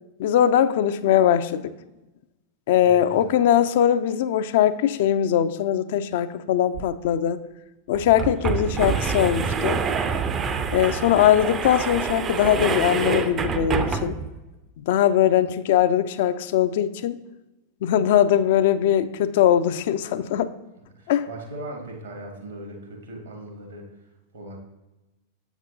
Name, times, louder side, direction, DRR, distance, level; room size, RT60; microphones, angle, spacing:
voice 1, 0.2-1.7 2.7-7.4 7.9-9.8 10.7-14.2 14.8-17.2 17.8-20.5 21.1-21.3, left 10 dB, 55° left, 12 dB, 0.3 m, -21 dB
voice 2, 2.8-3.4 20.9-23.9 24.3-24.6, right 1 dB, 70° right, 2 dB, 1.3 m, -39 dB
sound 1, 6.7-6.8 7.1-7.2 7.9-14.4, right 6 dB, 25° right, 0.4 m, -26 dB
7.8 x 6.0 x 2.7 m, 1.0 s
figure-of-eight pair, 90°, 0 cm